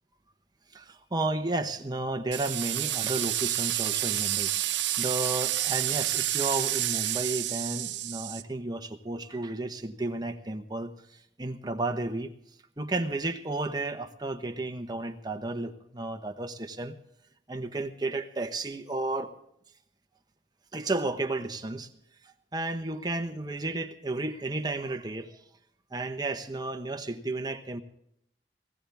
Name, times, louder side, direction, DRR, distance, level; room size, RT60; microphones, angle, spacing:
voice 1, 0.7-12.3 12.8-17.0 17.5-19.3 20.7-21.9 22.5-25.4 25.9-27.8, right 2 dB, 20° right, 5 dB, 1.1 m, -33 dB
sound 1, 2.3-8.4, right 14 dB, 90° right, 0.9 m, -29 dB
20.0 x 17.0 x 3.5 m, 0.74 s
head